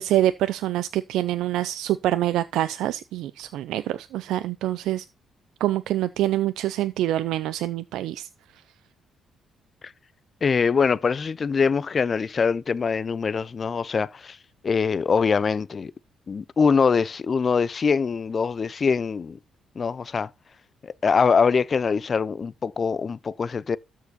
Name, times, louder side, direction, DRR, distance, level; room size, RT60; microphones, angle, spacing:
voice 1, 0.0-5.0 5.6-8.3, right 13 dB, 85° right, 0.4 m, -25 dB
voice 2, 10.4-14.4 14.6-15.9 16.3-19.4 19.8-20.3 20.8-23.8, left 5 dB, 40° left, 0.4 m, -23 dB
13.0 x 4.7 x 4.1 m
cardioid pair, 90°, 0 cm